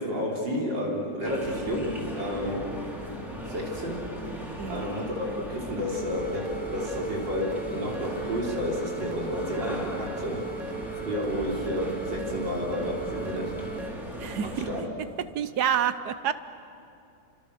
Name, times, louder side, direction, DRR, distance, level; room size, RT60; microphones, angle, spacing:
voice 1, 0.0-2.8 3.5-10.7 11.0-13.6 14.4-14.9, equal, 80° right, -1 dB, 4.8 m, -31 dB
sound 1, 1.2-14.8, equal, ahead, 3.4 m, -38 dB
sound 2, 5.9-13.9, right 5 dB, 25° right, 1.0 m, -38 dB
voice 2, 14.2-14.5 14.8-14.9 15.3-16.3, right 9 dB, 65° right, 13 dB, 1.4 m, -27 dB
29.5 x 25.0 x 6.8 m, 2.6 s
omnidirectional pair, 2.0 m